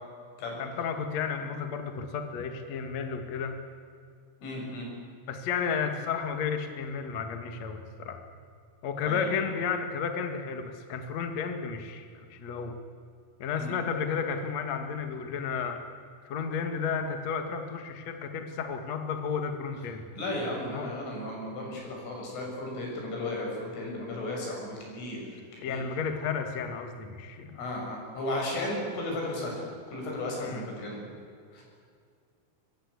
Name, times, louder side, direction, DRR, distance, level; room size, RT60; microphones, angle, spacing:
voice 1, 0.6-3.5 5.3-8.2 8.8-12.8 13.4-15.8 16.2-20.1 20.7-20.9 25.6-27.6 30.4-30.7, left 6 dB, 50° left, 6 dB, 2.1 m, -32 dB
voice 2, 4.4-4.9 9.0-9.3 13.6-13.7 20.2-25.8 27.5-29.6 29.9-31.0 31.5-31.6, left 1 dB, 75° left, -1 dB, 9.4 m, -35 dB
23.5 x 22.5 x 8.4 m, 2.3 s
omnidirectional pair, 5.8 m